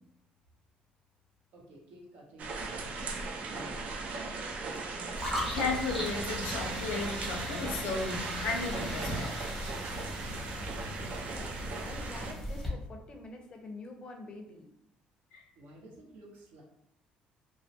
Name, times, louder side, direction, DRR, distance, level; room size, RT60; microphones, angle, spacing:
voice 1, 1.5-2.5 2.8-3.1 3.4-3.9 15.6-16.6, right 1 dB, 70° right, -2 dB, 0.8 m, -52 dB
sound 1, 2.4-12.3, right 3 dB, 50° right, 0.4 m, -38 dB
voice 2, 4.8-5.2 5.5-9.5 15.3-15.4, left 4 dB, 85° left, 2 dB, 0.5 m, -35 dB
sound 2, 5.2-12.7, left 1 dB, 5° right, 0.8 m, -39 dB
voice 3, 10.9-14.7, left 2 dB, 35° left, 3 dB, 0.5 m, -47 dB
2.3 x 2.0 x 2.7 m, 0.76 s
cardioid pair, 110°, 3 cm